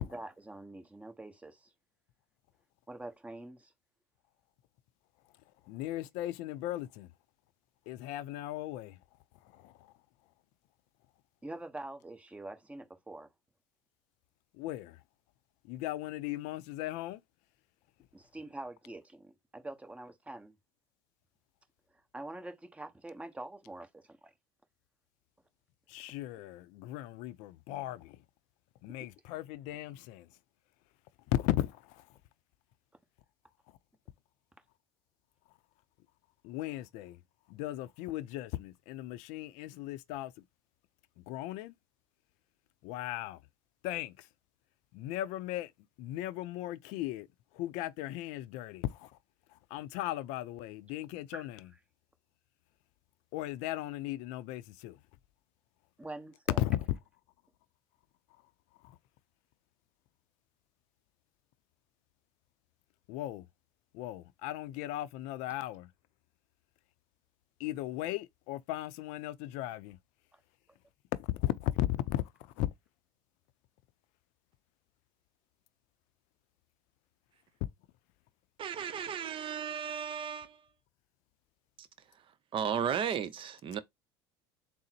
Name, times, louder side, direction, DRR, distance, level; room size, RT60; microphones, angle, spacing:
voice 1, 0.0-1.7 2.9-3.7 11.4-13.3 18.1-20.6 22.1-24.3 51.3-51.5 51.7-51.8 56.0-56.6, right 2 dB, 10° right, 1.0 m, -45 dB
voice 2, 5.7-7.1 7.9-8.9 9.6-9.7 14.6-14.9 15.7-17.2 25.9-28.2 28.8-30.2 31.3-32.0 36.4-37.2 37.5-40.3 41.3-41.7 42.8-43.4 43.8-44.1 44.9-45.7 46.0-47.3 47.6-49.1 49.7-51.5 53.3-55.0 56.6-56.8 63.1-63.4 63.9-65.9 67.6-70.0 71.2-72.2 72.6-72.7, left 15 dB, 65° left, 0.5 m, -36 dB
voice 3, 78.6-80.6 82.5-83.8, right 8 dB, 40° right, 0.6 m, -34 dB
3.8 x 2.0 x 4.1 m
hypercardioid pair, 80°, 13 cm